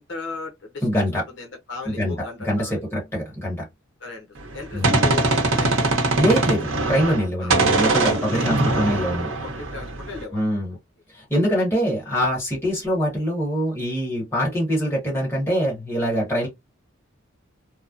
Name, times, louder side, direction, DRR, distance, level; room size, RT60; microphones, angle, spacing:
voice 1, 0.0-2.8 4.0-6.1 7.4-7.6 8.3-8.8 9.4-10.4, left 4 dB, 60° left, 0.8 m, -36 dB
voice 2, 0.8-1.2 1.8-3.7 4.7-5.1 6.2-9.3 10.3-10.8 11.1-16.5, equal, 10° left, 1.3 m, -24 dB
Gunshot gunfire, 4.4-7.3 7.5-10.2, right 2 dB, 80° right, 0.8 m, -22 dB
3.1 x 2.0 x 2.5 m
head